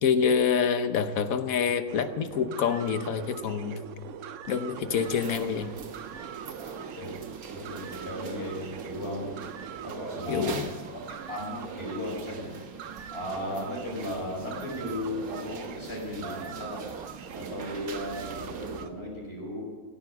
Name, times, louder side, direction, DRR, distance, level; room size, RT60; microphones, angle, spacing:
voice 1, 0.0-3.8 4.5-5.7 10.3-10.7, left 7 dB, 75° left, 10 dB, 1.4 m, -26 dB
sound 1, 1.9-18.9, right 8 dB, 65° right, 1.0 m, -42 dB
sound 2, 4.9-18.9, right 5 dB, 85° right, 1.7 m, -43 dB
voice 2, 6.6-7.1 7.5-9.4 9.8-11.0 11.3-12.5 13.1-16.8 17.3-19.7, left 1 dB, 45° left, -2 dB, 5.8 m, -36 dB
16.5 x 11.0 x 8.1 m, 1.5 s
omnidirectional pair, 1.5 m